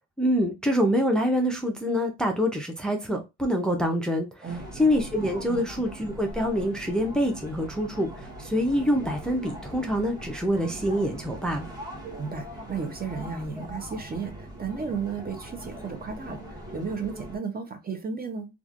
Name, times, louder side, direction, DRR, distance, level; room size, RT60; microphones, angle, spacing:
voice 1, 0.2-11.7, equal, ahead, 0.6 m, -26 dB
sound 1, 4.5-17.4, right 1 dB, 15° right, 1.1 m, -41 dB
voice 2, 12.0-18.5, right 5 dB, 30° right, 0.8 m, -34 dB
3.1 x 2.5 x 2.4 m
cardioid pair, 90°, 30 cm